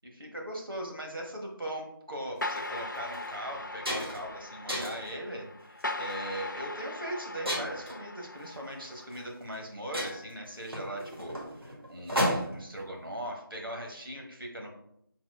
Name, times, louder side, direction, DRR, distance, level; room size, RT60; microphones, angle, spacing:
voice 1, 0.0-14.7, right 1 dB, 65° right, 0 dB, 1.2 m, -40 dB
sound 1, 2.4-9.3, left 2 dB, 55° left, 0.4 m, -39 dB
sound 2, 2.4-2.6 3.1-3.3 3.5-4.3 4.7-5.1 5.8-6.1 7.5-8.0 9.1-9.2 9.5-9.6 9.9-12.7, equal, 85° right, 1.6 m, -33 dB
4.1 x 2.3 x 4.7 m, 0.73 s
figure-of-eight pair, 175°, 12 cm